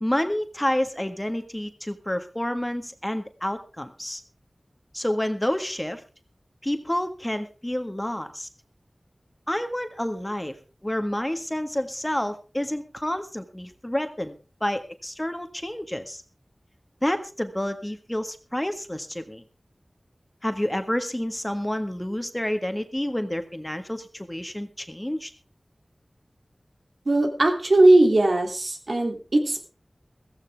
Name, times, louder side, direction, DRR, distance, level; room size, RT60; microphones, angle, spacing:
voice 1, 0.0-4.2 4.9-6.0 6.6-8.5 9.5-10.6 10.8-14.3 14.6-16.2 17.0-19.4 20.4-25.3, left 1 dB, 15° left, 8 dB, 1.7 m, -29 dB
voice 2, 27.1-29.6, right 2 dB, 75° right, 3 dB, 2.9 m, -19 dB
15.5 x 15.0 x 3.5 m, 0.34 s
wide cardioid pair, 50°, 0 cm